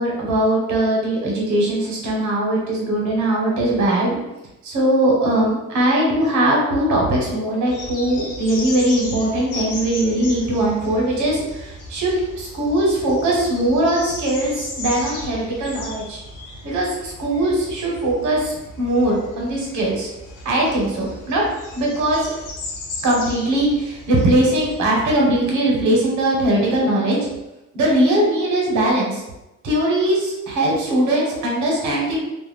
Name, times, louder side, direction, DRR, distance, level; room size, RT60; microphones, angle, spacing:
voice 1, 0.0-4.2 4.6-16.2 16.6-20.1 20.4-21.4 21.7-22.3 23.0-27.2 27.7-29.2 29.6-32.2, right 1 dB, 75° right, -2 dB, 1.0 m, -20 dB
sound 1, 7.7-24.9, left 2 dB, 90° left, 0.7 m, -36 dB
2.4 x 2.2 x 3.3 m, 0.97 s
cardioid pair, 90°, 30 cm